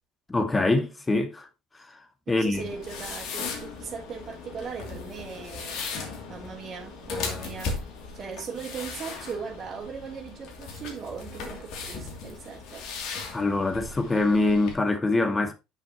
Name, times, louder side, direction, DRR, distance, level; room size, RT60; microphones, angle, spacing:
voice 1, 0.3-1.5 2.3-2.7 13.3-15.5, left 2 dB, 20° left, 2.0 m, -24 dB
voice 2, 2.3-6.0 6.3-7.8 8.1-12.9, right 6 dB, 40° right, 3.0 m, -39 dB
sound 1, 2.5-14.7, left 4 dB, 55° left, 2.8 m, -37 dB
10.0 x 6.6 x 3.0 m
figure-of-eight pair, 60°, 0 cm